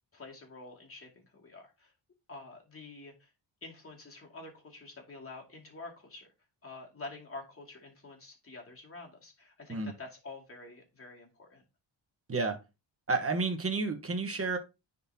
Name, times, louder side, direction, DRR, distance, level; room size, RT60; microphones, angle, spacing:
voice 1, 0.1-1.9 2.3-3.3 3.6-6.3 6.6-11.6, left 3 dB, 30° left, 2.4 m, -48 dB
voice 2, 13.1-14.6, right 3 dB, 30° right, 1.2 m, -30 dB
9.8 x 4.0 x 2.8 m
wide cardioid pair, 105°, 46 cm